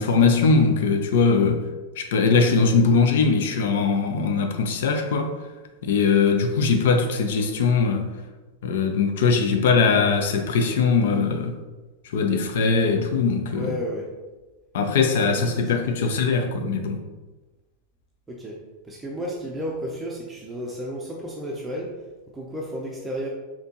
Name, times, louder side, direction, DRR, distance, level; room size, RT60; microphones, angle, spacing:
voice 1, 0.0-1.6 2.0-5.3 5.8-8.1 8.6-11.6 12.0-13.7 14.7-17.0, left 4 dB, 55° left, 5 dB, 0.4 m, -21 dB
voice 2, 13.6-14.1 15.2-16.1 18.3-22.0 22.3-23.3, equal, 10° right, -2 dB, 0.5 m, -33 dB
4.2 x 2.8 x 2.8 m, 1.2 s
figure-of-eight pair, 90°, 0 cm